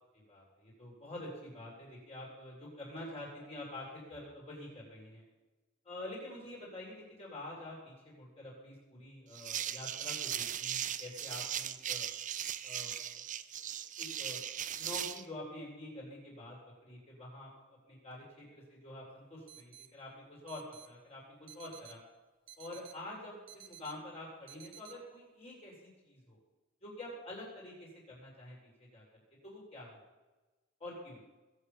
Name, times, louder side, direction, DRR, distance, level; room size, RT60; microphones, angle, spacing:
voice 1, 0.1-5.2 5.8-12.1 12.6-13.2 13.6-13.7 14.0-16.6 16.8-22.0 22.6-26.4 26.8-29.0 29.4-30.0 30.8-31.2, left 1 dB, 30° left, -4 dB, 7.7 m, -47 dB
sound 1, 9.3-15.2, right 10 dB, 40° right, 0.7 m, -38 dB
sound 2, 19.5-19.9 20.5-20.9 21.5-21.9 22.5-22.9 23.5-23.9 24.5-24.9, right 12 dB, 65° right, 1.5 m, -53 dB
22.0 x 8.5 x 7.5 m, 1.2 s
head